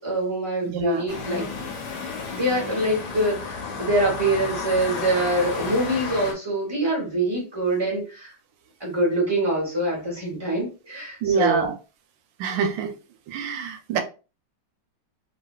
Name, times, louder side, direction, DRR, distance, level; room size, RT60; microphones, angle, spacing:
voice 1, 0.0-1.5 2.3-8.3 8.8-11.7, right 1 dB, 30° right, 0.5 m, -24 dB
voice 2, 0.6-1.0 11.2-11.7 12.4-12.9 13.3-14.0, right 6 dB, 75° right, 1.2 m, -25 dB
sound 1, 1.1-6.3, left 4 dB, 65° left, 1.1 m, -32 dB
3.1 x 2.7 x 2.2 m
omnidirectional pair, 2.3 m